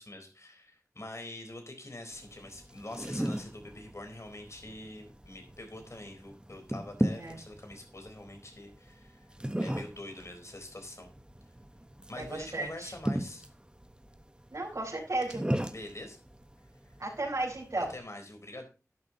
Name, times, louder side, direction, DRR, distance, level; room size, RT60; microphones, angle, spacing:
voice 1, 0.0-9.3 9.6-11.1 12.1-13.5 15.7-16.2 16.9-17.0 17.8-18.7, left 1 dB, 55° left, 5 dB, 4.2 m, -45 dB
sound 1, 2.1-18.0, right 1 dB, 15° right, 1.2 m, -38 dB
voice 2, 12.2-12.9 14.5-15.4 17.0-17.9, right 2 dB, 70° right, -5 dB, 4.8 m, -34 dB
12.0 x 11.5 x 2.9 m, 0.31 s
wide cardioid pair, 55°, 6 cm